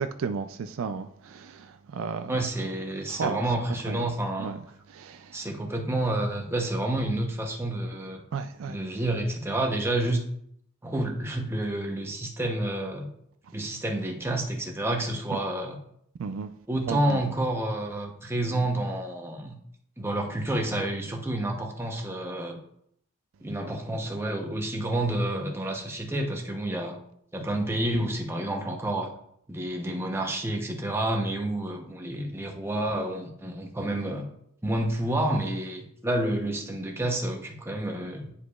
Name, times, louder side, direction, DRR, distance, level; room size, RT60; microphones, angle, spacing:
voice 1, 0.0-2.4 3.1-3.4 3.9-4.1 4.4-4.6 4.9-5.4 8.3-8.8 16.2-16.5 16.9-17.4, right 5 dB, 70° right, 0.3 m, -33 dB
voice 2, 2.3-4.5 5.3-8.2 8.7-10.2 10.8-13.1 13.5-15.8 16.7-19.6 20.0-22.6 23.4-27.0 27.3-29.1 29.5-34.3 34.6-38.3, right 1 dB, 10° right, 0.8 m, -29 dB
9.9 x 4.8 x 2.4 m
head